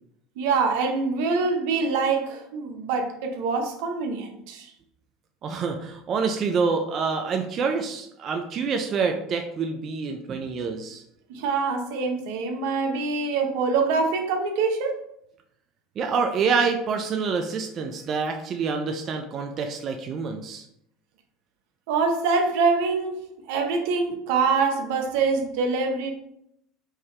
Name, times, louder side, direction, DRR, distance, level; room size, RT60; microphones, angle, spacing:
voice 1, 0.4-4.7 11.3-15.0 21.9-26.1, right 4 dB, 80° right, 3 dB, 0.8 m, -25 dB
voice 2, 5.4-11.0 16.0-20.6, right 5 dB, 45° right, 4 dB, 0.5 m, -27 dB
4.7 x 2.8 x 3.2 m, 0.74 s
supercardioid pair, 100°, 0 cm